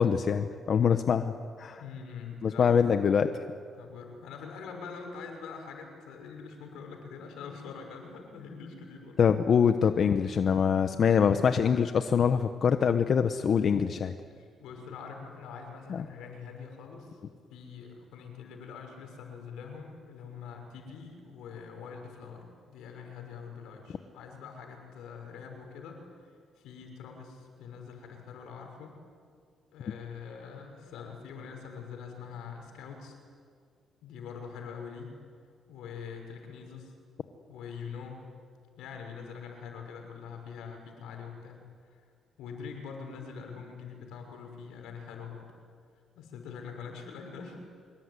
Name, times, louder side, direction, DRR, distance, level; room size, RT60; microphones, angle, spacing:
voice 1, 0.0-1.3 1.6-1.8 2.4-3.3 9.2-14.1 15.9-16.0, left 7 dB, 55° left, 8 dB, 1.1 m, -24 dB
voice 2, 1.8-2.8 3.7-9.2 14.3-17.2 17.5-26.0 26.6-29.0 29.7-33.1 34.0-35.1 35.7-36.9 37.5-38.2 38.8-41.6 41.9-42.0 42.4-45.5 46.2-47.6, left 6 dB, 90° left, 3 dB, 6.1 m, -44 dB
25.5 x 22.5 x 9.9 m, 2.1 s
cardioid pair, 90°, 0 cm